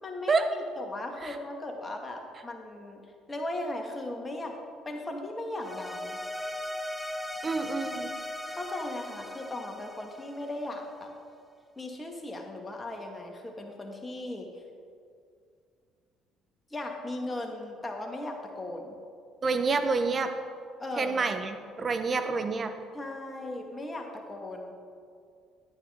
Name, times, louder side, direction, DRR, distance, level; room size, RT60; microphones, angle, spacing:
voice 1, 0.0-3.0 3.3-4.6 4.9-6.2 8.5-11.1 11.8-14.5 16.7-18.9 20.8-21.3 22.9-24.7, left 1 dB, 20° left, 2 dB, 1.8 m, -37 dB
sound 1, 5.6-10.9, left 1 dB, ahead, 0.7 m, -38 dB
voice 2, 7.4-8.1 19.4-20.3 21.0-22.7, right 4 dB, 40° right, 8 dB, 0.9 m, -28 dB
10.5 x 9.2 x 3.6 m, 2.3 s
hypercardioid pair, 60°, 0 cm